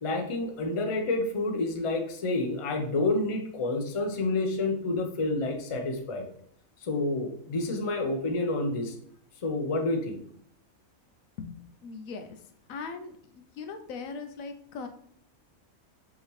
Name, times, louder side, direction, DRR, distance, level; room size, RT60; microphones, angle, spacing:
voice 1, 0.0-6.2 6.8-8.9 9.4-10.2, left 2 dB, 40° left, 4 dB, 0.5 m, -29 dB
voice 2, 11.8-12.3 12.7-14.9, left 4 dB, 80° left, 7 dB, 1.0 m, -39 dB
5.6 x 3.0 x 3.1 m, 0.64 s
omnidirectional pair, 1.4 m